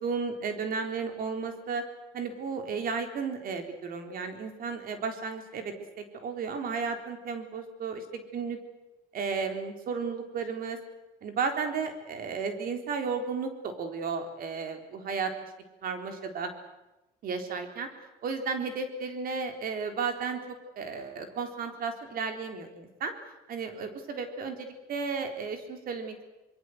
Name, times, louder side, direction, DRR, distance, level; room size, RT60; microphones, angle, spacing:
voice 1, 0.0-1.8 2.1-5.7 6.1-8.6 9.1-10.8 11.2-15.3 15.8-16.5 17.2-17.9 18.2-23.1 23.5-26.3, right 5 dB, 60° right, 6 dB, 3.9 m, -33 dB
25.0 x 22.5 x 8.0 m, 1.0 s
cardioid pair, 110°, 17 cm